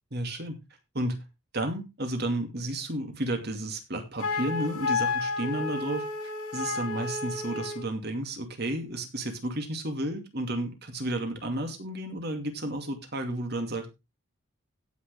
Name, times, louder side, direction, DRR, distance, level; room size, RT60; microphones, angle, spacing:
voice 1, 0.1-0.6 0.9-1.2 1.5-6.0 6.5-13.9, right 1 dB, 50° right, 2.4 m, -32 dB
Wind instrument woodwind instrument, 4.2-7.9, left 3 dB, 90° left, 2.5 m, -31 dB
17.0 x 6.4 x 3.5 m
head